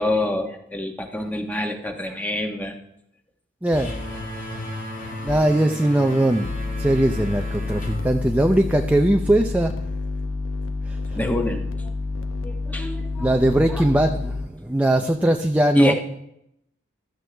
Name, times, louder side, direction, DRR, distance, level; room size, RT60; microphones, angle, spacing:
voice 1, 0.0-2.7 11.1-11.9 12.4-13.3 13.7-13.8 15.7-15.9, left 1 dB, 10° left, 3 dB, 1.2 m, -26 dB
voice 2, 3.6-3.9 5.2-6.5 6.8-9.8 10.9-11.2 13.2-15.9, right 1 dB, 5° right, 4 dB, 0.5 m, -20 dB
sound 1, 3.7-9.1, left 1 dB, 45° left, 2.4 m, -35 dB
sound 2, 5.3-5.4 6.4-14.5, left 3 dB, 85° left, 1.0 m, -29 dB
15.5 x 12.5 x 3.4 m, 0.78 s
head